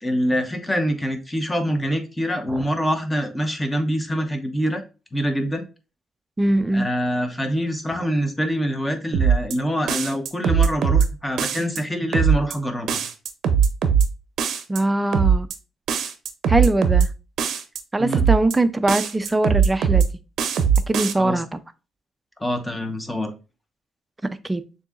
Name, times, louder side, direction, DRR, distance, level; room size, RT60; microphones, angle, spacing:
voice 1, 0.0-4.8 5.1-5.6 6.7-13.0 18.0-18.2 21.2-21.4 22.4-23.3, equal, 15° left, 0.9 m, -25 dB
voice 2, 6.4-6.9 14.7-15.5 16.5-17.1 17.9-20.0 20.9-21.6 24.4-24.6, right 2 dB, 15° right, 0.4 m, -21 dB
sound 1, 9.1-9.6 9.9-11.1 11.4-11.8 12.1-12.6 12.9-14.1 14.4-14.8 15.1-15.6 15.9-17.1 17.4-17.8 18.1-18.6 18.9-20.1 20.4-21.1, right 7 dB, 70° right, 0.6 m, -19 dB
6.7 x 2.7 x 2.4 m
cardioid pair, 90°, 0 cm